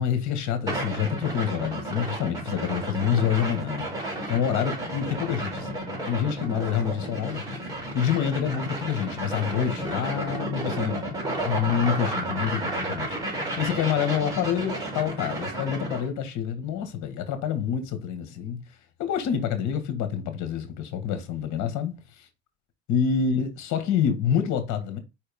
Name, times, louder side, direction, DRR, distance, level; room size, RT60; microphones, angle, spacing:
voice 1, 0.0-18.6 19.0-22.3 22.9-25.0, left 8 dB, 60° left, 2.0 m, -27 dB
sound 1, 0.7-16.1, right 1 dB, 10° right, 4.1 m, -32 dB
5.2 x 4.2 x 5.5 m
supercardioid pair, 110°, 32 cm